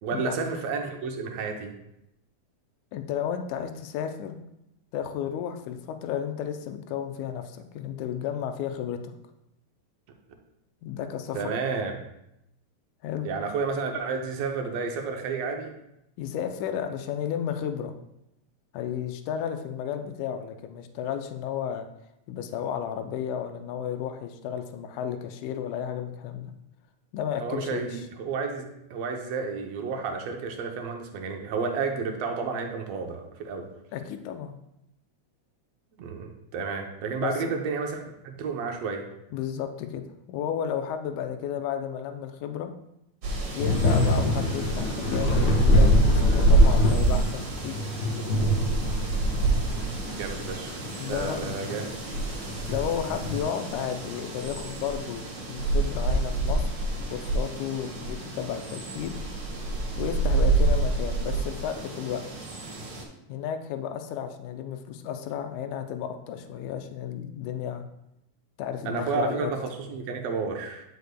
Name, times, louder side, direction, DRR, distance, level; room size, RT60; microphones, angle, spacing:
voice 1, 0.0-1.7 11.3-11.9 13.2-15.7 27.4-33.7 36.0-39.0 49.3-49.8 50.1-51.8 52.1-52.2 68.8-70.8, right 5 dB, 70° right, 3 dB, 1.7 m, -31 dB
voice 2, 2.9-4.4 4.9-9.0 10.8-11.4 13.0-13.3 16.2-17.9 18.7-21.9 22.3-26.5 27.1-28.0 33.9-34.6 37.2-37.5 39.3-42.7 43.5-47.8 51.0-51.8 52.7-56.7 57.1-59.2 60.0-62.2 63.3-67.8 68.6-69.6, left 9 dB, 85° left, 7 dB, 2.0 m, -33 dB
sound 1, 43.2-63.0, right 1 dB, 55° right, 2.1 m, -26 dB
Thunder / Rain, 43.6-53.4, left 1 dB, 55° left, 1.3 m, -28 dB
9.2 x 6.5 x 2.2 m, 0.83 s
omnidirectional pair, 3.4 m